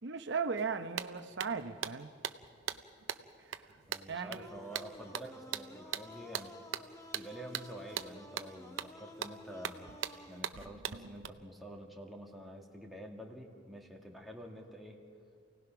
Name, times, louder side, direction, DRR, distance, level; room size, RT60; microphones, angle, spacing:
voice 1, 0.0-2.1 3.4-3.7 4.1-4.5, right 5 dB, 65° right, 9 dB, 0.9 m, -37 dB
sound 1, 0.6-0.7 1.0-11.3, right 9 dB, 90° right, 0.7 m, -41 dB
voice 2, 3.9-6.6 7.1-15.0, equal, ahead, -1 dB, 2.1 m, -48 dB
sound 2, 4.4-10.4, left 1 dB, 15° left, 1.4 m, -53 dB
28.5 x 18.0 x 5.9 m, 2.3 s
head